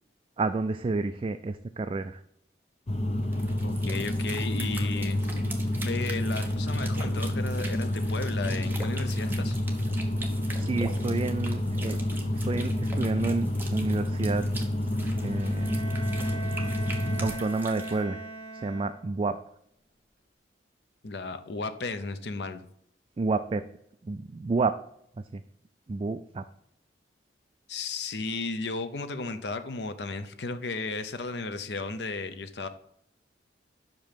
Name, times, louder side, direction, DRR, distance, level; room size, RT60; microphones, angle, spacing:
voice 1, 0.4-2.2 10.5-12.0 12.3-14.4 15.2-15.8 17.2-18.2 18.5-19.4 23.2-23.7 24.0-24.8 25.2-25.4 25.9-26.4, right 3 dB, 30° right, 9 dB, 0.3 m, -30 dB
sound 1, 2.9-17.3, left 1 dB, 35° left, 0.7 m, -29 dB
sound 2, 3.2-18.0, right 2 dB, 10° right, 1.1 m, -43 dB
voice 2, 3.6-5.3 5.8-9.6 21.0-22.7 27.7-32.7, left 3 dB, 75° left, 9 dB, 0.7 m, -34 dB
Bowed string instrument, 15.2-19.3, right 3 dB, 50° right, 2.5 m, -41 dB
6.0 x 5.2 x 5.7 m, 0.71 s
head